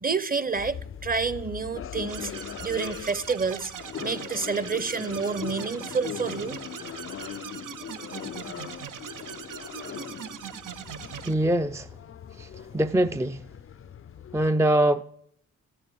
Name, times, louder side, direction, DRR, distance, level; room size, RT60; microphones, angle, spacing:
voice 1, 0.0-2.3 2.6-3.7 4.0-6.6, right 5 dB, 25° right, 0.9 m, -29 dB
sound 1, 0.5-14.5, left 9 dB, 40° left, 0.5 m, -40 dB
sound 2, 2.1-11.3, right 8 dB, 70° right, 0.8 m, -41 dB
voice 2, 11.2-11.9 12.4-13.4 14.3-15.0, right 1 dB, 10° right, 0.5 m, -23 dB
13.0 x 7.7 x 9.4 m
cardioid pair, 65°, 33 cm